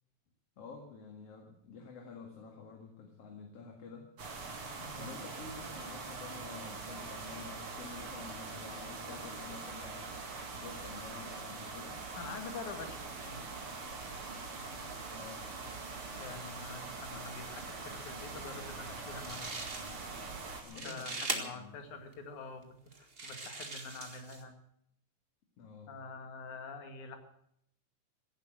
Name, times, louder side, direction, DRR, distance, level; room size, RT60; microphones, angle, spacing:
voice 1, 0.6-4.1 5.0-10.1 10.5-12.0 15.1-15.5 20.6-21.8 25.6-25.9, left 4 dB, 55° left, 2 dB, 2.8 m, -49 dB
sound 1, 4.2-20.6, right 3 dB, 50° right, 3.2 m, -43 dB
voice 2, 4.8-5.1 12.2-13.4 16.2-19.5 20.7-24.5 25.9-27.2, left 4 dB, 85° left, 6 dB, 3.3 m, -46 dB
sound 2, 19.2-20.2 20.5-21.4 22.1-22.2 22.9-24.4, right 3 dB, 25° right, 1.5 m, -40 dB
16.0 x 11.0 x 7.8 m, 0.71 s
omnidirectional pair, 3.3 m